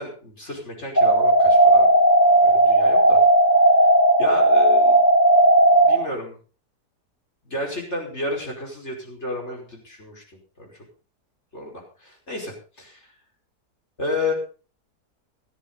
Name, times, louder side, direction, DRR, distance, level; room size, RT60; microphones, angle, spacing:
voice 1, 0.0-1.9 2.2-3.2 4.2-5.0 5.7-6.4 7.4-10.7 11.5-13.1 14.0-14.3, left 2 dB, 40° left, 1 dB, 5.5 m, -32 dB
sound 1, 1.0-6.0, right 1 dB, 10° left, 3.5 m, -15 dB
16.5 x 13.5 x 4.0 m, 0.37 s
omnidirectional pair, 1.8 m